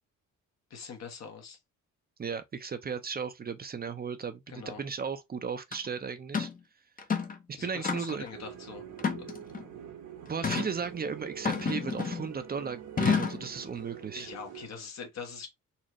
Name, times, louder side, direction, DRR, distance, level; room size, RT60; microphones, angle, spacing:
voice 1, 0.7-1.6 4.5-4.8 7.5-8.9 14.1-15.5, left 6 dB, 60° left, 1.3 m, -43 dB
voice 2, 2.2-6.5 7.5-8.3 10.3-14.3, right 6 dB, 30° right, 0.6 m, -35 dB
sound 1, 5.7-5.8 6.3-6.6 7.0-7.4 7.8-8.3 9.0-9.6 10.4-10.7 11.4-12.3 13.0-13.5, left 6 dB, 30° left, 0.7 m, -30 dB
sound 2, 8.3-14.7, right 9 dB, 75° right, 1.4 m, -45 dB
4.2 x 2.4 x 3.0 m
cardioid pair, 90°, 30 cm